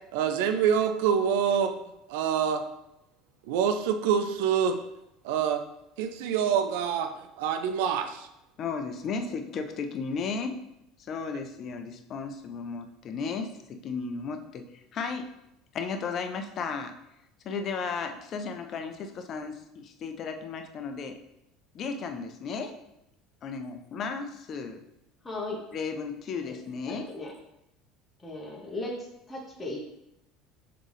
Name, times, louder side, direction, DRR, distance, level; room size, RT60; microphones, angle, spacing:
voice 1, 0.1-1.7 2.1-2.6 3.5-4.8 5.2-5.6 6.0-7.1 7.4-8.3, right 7 dB, 65° right, 8 dB, 0.3 m, -26 dB
voice 2, 8.6-10.6 11.0-15.3 15.7-16.9 17.4-21.2 21.7-22.7 23.4-24.8 25.7-27.1, left 5 dB, 45° left, 6 dB, 0.5 m, -34 dB
voice 3, 25.2-25.6 26.4-26.5 26.9-27.3 28.2-28.9 29.3-29.8, left 2 dB, 20° left, -2 dB, 0.9 m, -36 dB
3.7 x 3.5 x 3.4 m, 0.85 s
figure-of-eight pair, 70°, 0 cm